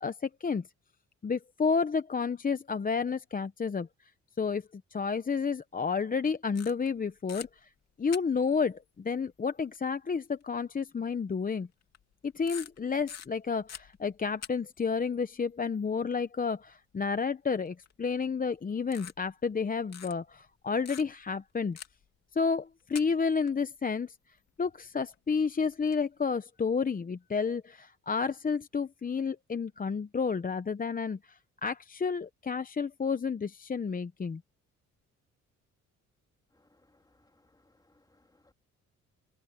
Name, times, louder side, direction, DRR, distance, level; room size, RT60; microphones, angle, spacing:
voice 1, 0.0-0.7 1.2-3.9 4.4-7.7 8.0-11.7 12.2-21.8 22.3-24.2 24.6-34.4, left 5 dB, 30° left, 0.9 m, -31 dB
sound 1, 6.6-7.0 7.3-7.5 8.1-8.6 9.8-9.9 10.4-10.5 11.8-12.1 12.5-14.5 14.8-14.9 17.8-18.1 18.9-19.6 19.9-20.1 20.9-21.3 21.8-22.1 22.8-23.5 25.1-25.2 25.7-26.0, left 8 dB, 60° left, 3.0 m, -45 dB
voice 2, 36.5-38.5, left 2 dB, 15° left, 3.4 m, -67 dB
cardioid pair, 90°, 30 cm